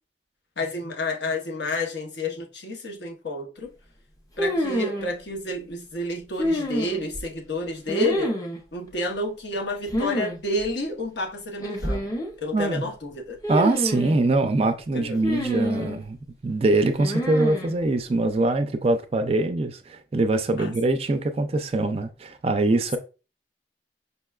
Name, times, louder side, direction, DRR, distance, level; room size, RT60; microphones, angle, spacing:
voice 1, 0.6-3.7 4.4-8.3 8.7-12.0 12.4-13.4 14.9-15.2 20.6-20.7, left 1 dB, 80° left, 0.9 m, -30 dB
sound 1, 4.4-5.1 6.4-7.2 7.9-8.6 9.9-10.4 10.6-10.7 11.6-12.3 13.4-14.2 15.2-16.0 17.0-17.7, equal, 20° left, 0.6 m, -27 dB
voice 2, 12.5-12.9 13.5-16.2 16.4-23.0, right 2 dB, 35° right, 0.3 m, -23 dB
5.4 x 2.2 x 2.3 m
head